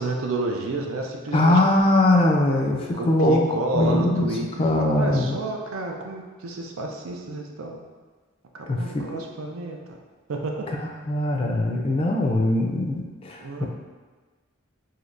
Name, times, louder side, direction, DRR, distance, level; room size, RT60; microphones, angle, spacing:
voice 1, 0.0-1.6 2.9-7.8 8.6-10.0 10.3-10.7 13.4-13.7, right 2 dB, 85° right, 1 dB, 0.5 m, -30 dB
voice 2, 1.3-3.4 3.7-4.3 4.6-5.4 8.7-9.2 10.8-13.7, left 1 dB, 25° left, 0 dB, 0.3 m, -21 dB
3.2 x 2.7 x 2.5 m, 1.4 s
head